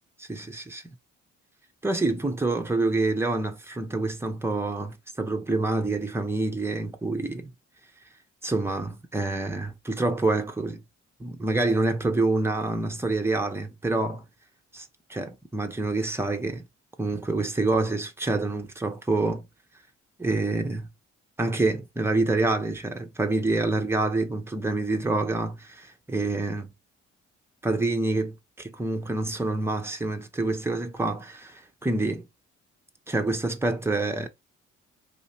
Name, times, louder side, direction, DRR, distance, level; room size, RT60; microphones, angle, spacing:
voice 1, 0.2-0.9 1.8-7.5 8.4-10.8 11.2-14.2 14.7-16.7 17.0-19.5 20.2-20.9 21.4-26.7 27.6-32.3 33.1-34.3, right 2 dB, 5° right, 0.9 m, -27 dB
4.9 x 2.7 x 2.9 m
figure-of-eight pair, 40°, 36 cm